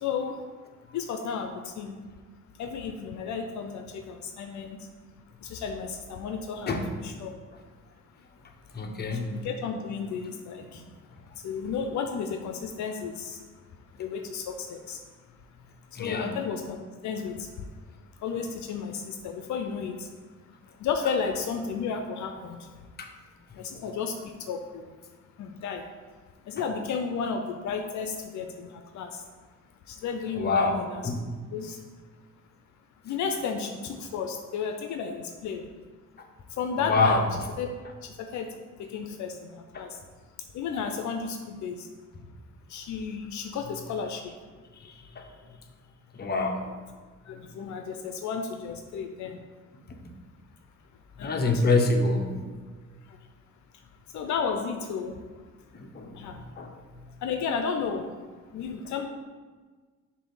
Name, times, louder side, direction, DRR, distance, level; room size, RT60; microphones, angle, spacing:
voice 1, 0.0-0.4 0.9-2.0 2.6-4.8 5.4-7.3 9.2-10.8 11.4-13.4 14.0-15.0 16.0-16.8 17.0-17.5 18.2-20.1 20.8-22.6 23.6-24.1 24.5-24.8 25.4-25.8 26.5-29.2 29.9-31.0 31.5-31.8 33.0-35.6 36.6-37.3 37.6-37.7 38.0-38.5 38.8-40.0 40.5-41.9 42.7-44.2 47.3-49.4 51.2-51.6 54.1-55.1 56.2-56.4 57.2-58.1 58.5-59.1, left 6 dB, 70° left, 5 dB, 0.5 m, -33 dB
voice 2, 8.7-9.3 16.0-16.3 23.0-23.1 30.3-30.8 31.0-31.2 36.2-36.3 36.9-37.2 39.7-39.9 44.8-45.2 46.1-46.7 51.2-52.4 55.7-56.3 56.6-56.7, left 3 dB, 35° left, 3 dB, 0.8 m, -26 dB
7.0 x 2.7 x 5.4 m, 1.4 s
cardioid pair, 90°, 30 cm